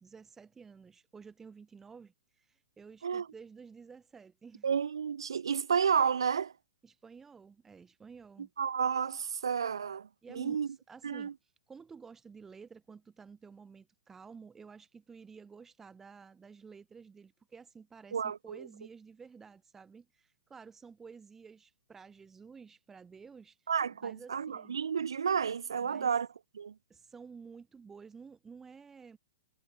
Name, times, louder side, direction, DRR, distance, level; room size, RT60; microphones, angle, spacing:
voice 1, 0.0-4.7 6.8-8.5 10.2-23.7 24.0-24.8 25.8-26.1 26.9-29.2, right 5 dB, 15° right, 6.1 m, -52 dB
voice 2, 4.6-6.5 8.6-10.1 10.3-10.7 11.0-11.3 18.1-18.7 23.7-26.3 26.5-26.7, right 7 dB, 65° right, 1.3 m, -31 dB
figure-of-eight pair, 105°, 3 cm